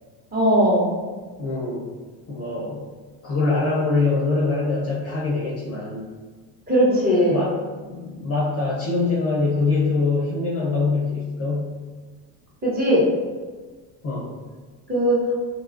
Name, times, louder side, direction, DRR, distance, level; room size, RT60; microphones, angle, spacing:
voice 1, 0.3-0.9 6.7-7.4 12.6-13.1 14.9-15.3, equal, 20° right, -7 dB, 0.9 m, -19 dB
voice 2, 1.4-1.9 2.3-2.9 3.2-6.1 6.9-7.5 7.9-11.7 14.0-14.3, left 3 dB, 30° left, -6 dB, 0.6 m, -24 dB
3.2 x 2.3 x 2.5 m, 1.4 s
supercardioid pair, 115°, 49 cm